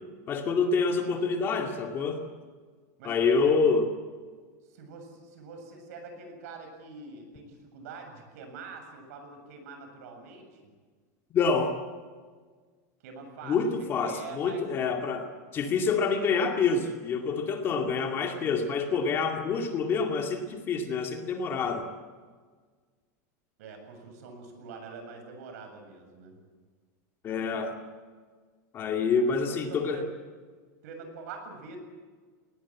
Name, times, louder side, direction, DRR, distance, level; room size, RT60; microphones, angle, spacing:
voice 1, 0.3-2.3 3.0-3.9 11.3-11.8 13.4-21.9 27.2-27.8 28.7-30.0, left 5 dB, 25° left, 4 dB, 2.3 m, -27 dB
voice 2, 3.0-3.6 4.7-10.7 13.0-13.6 14.0-14.7 23.6-26.4 29.1-30.1 30.8-31.8, right 4 dB, 65° right, 5 dB, 7.6 m, -44 dB
21.5 x 19.5 x 8.7 m, 1.5 s
supercardioid pair, 165°, 9 cm